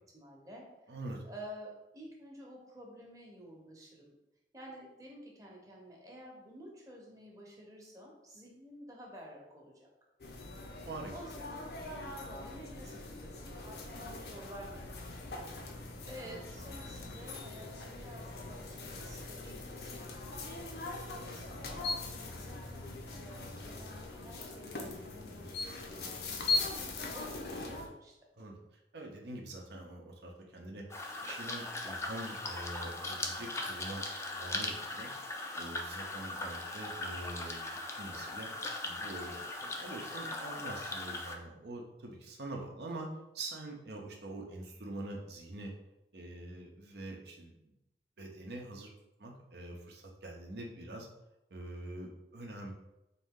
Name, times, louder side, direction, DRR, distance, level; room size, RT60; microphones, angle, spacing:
voice 1, 0.1-0.7 1.2-4.1 4.5-9.9 11.1-15.2 16.0-28.1 40.4-40.7, equal, 20° right, -2 dB, 0.9 m, -51 dB
voice 2, 0.9-1.2 10.9-11.1 28.4-28.6 28.9-38.5 38.8-45.7 46.1-47.7 48.2-48.9 49.2-51.1 51.5-52.7, right 2 dB, 65° right, 1 dB, 0.7 m, -45 dB
sound 1, 10.2-27.9, left 3 dB, 60° left, 0.6 m, -41 dB
sound 2, 30.9-41.3, left 2 dB, 15° left, 0.4 m, -39 dB
3.9 x 2.7 x 3.7 m, 0.90 s
head